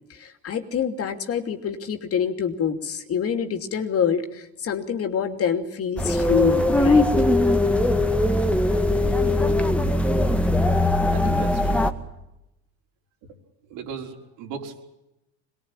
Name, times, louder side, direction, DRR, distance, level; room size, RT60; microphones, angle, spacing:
voice 1, 0.1-7.1, left 7 dB, 45° left, 7 dB, 2.9 m, -26 dB
sound 1, 6.0-11.9, left 2 dB, 5° left, 2.0 m, -20 dB
voice 2, 10.6-11.8 13.7-14.8, right 6 dB, 70° right, 2 dB, 5.5 m, -37 dB
23.0 x 21.0 x 9.0 m, 0.89 s
supercardioid pair, 95°, 34 cm